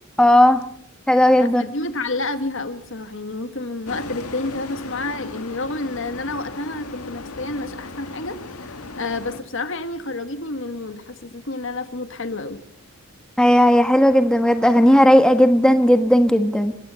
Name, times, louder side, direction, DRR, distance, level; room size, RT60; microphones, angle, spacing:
voice 1, 0.2-0.6 1.1-1.6 13.4-16.7, equal, 5° left, 1.3 m, -15 dB
voice 2, 1.4-12.6, left 2 dB, 60° left, 1.8 m, -29 dB
sound 1, 3.9-9.4, left 3 dB, 90° left, 2.0 m, -36 dB
29.5 x 16.0 x 5.7 m
head